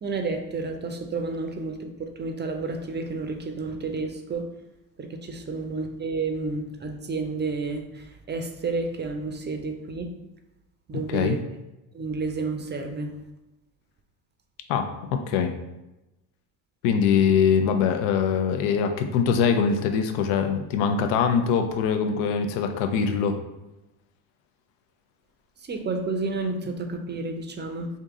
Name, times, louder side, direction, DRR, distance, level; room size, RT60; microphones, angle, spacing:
voice 1, 0.0-4.5 5.0-10.1 10.9-11.4 11.9-13.1 25.6-27.9, right 3 dB, 20° right, 5 dB, 0.5 m, -31 dB
voice 2, 14.7-15.5 16.8-23.4, left 6 dB, 75° left, 7 dB, 0.7 m, -23 dB
3.6 x 2.7 x 3.6 m, 0.99 s
supercardioid pair, 75°, 50 cm